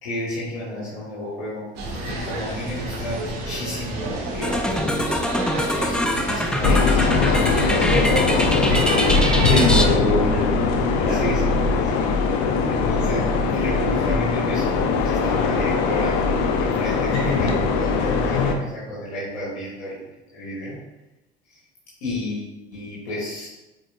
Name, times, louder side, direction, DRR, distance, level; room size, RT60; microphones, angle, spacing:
voice 1, 0.0-1.7 2.0-5.1 5.8-6.0 6.2-9.4 11.0-12.1 12.7-16.3 16.6-20.8 21.5-21.6 22.0-23.5, left 1 dB, 75° left, -9 dB, 2.2 m, -32 dB
sound 1, 1.8-9.9, right 2 dB, 55° right, 1.9 m, -28 dB
sound 2, 4.4-9.9, left 1 dB, 5° left, 0.5 m, -24 dB
sound 3, 6.6-18.5, left 4 dB, 55° left, 0.8 m, -21 dB
voice 2, 9.5-11.2 17.1-17.6 18.1-18.6, left 1 dB, 90° left, -2 dB, 1.4 m, -25 dB
7.7 x 4.8 x 2.6 m, 1.0 s
figure-of-eight pair, 60°, 32 cm